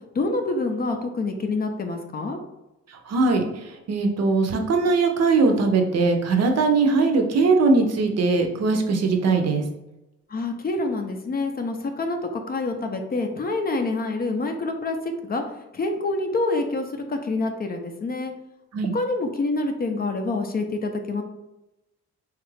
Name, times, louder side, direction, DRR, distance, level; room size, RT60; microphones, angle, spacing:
voice 1, 0.1-2.4 10.3-15.4 15.7-18.3 18.9-21.2, left 2 dB, 30° left, 5 dB, 0.4 m, -27 dB
voice 2, 3.1-9.6 18.7-18.9, right 3 dB, 55° right, 4 dB, 0.6 m, -20 dB
3.1 x 2.4 x 3.2 m, 0.95 s
cardioid pair, 90°, 30 cm